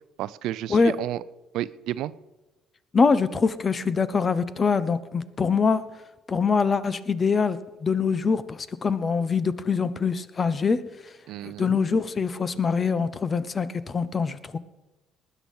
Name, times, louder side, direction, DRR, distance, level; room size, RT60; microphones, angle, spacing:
voice 1, 0.2-1.2 1.5-2.1 11.3-11.7, right 13 dB, 70° right, 17 dB, 0.5 m, -31 dB
voice 2, 2.9-5.8 6.3-10.8 11.4-14.6, left 5 dB, 40° left, 16 dB, 1.0 m, -24 dB
19.5 x 9.6 x 5.5 m, 1.1 s
hypercardioid pair, 55°, 0 cm